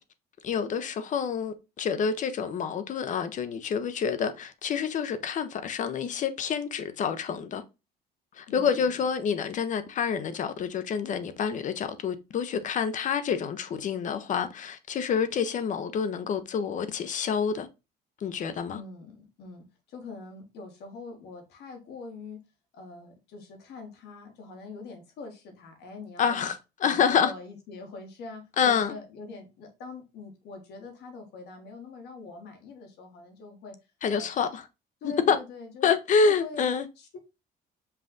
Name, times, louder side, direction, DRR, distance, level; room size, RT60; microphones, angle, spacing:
voice 1, 0.4-7.6 8.3-17.7 18.2-18.8 26.2-26.5 26.8-27.3 28.6-28.9 34.0-34.6 35.0-35.4 35.8-36.9, left 6 dB, 50° left, 0.7 m, -27 dB
voice 2, 8.5-9.0 18.7-22.4 22.7-26.5 26.8-33.8 34.1-34.3 35.0-35.9 36.2-37.2, left 3 dB, 80° left, 1.5 m, -43 dB
5.5 x 2.4 x 3.8 m
cardioid pair, 110°, 17 cm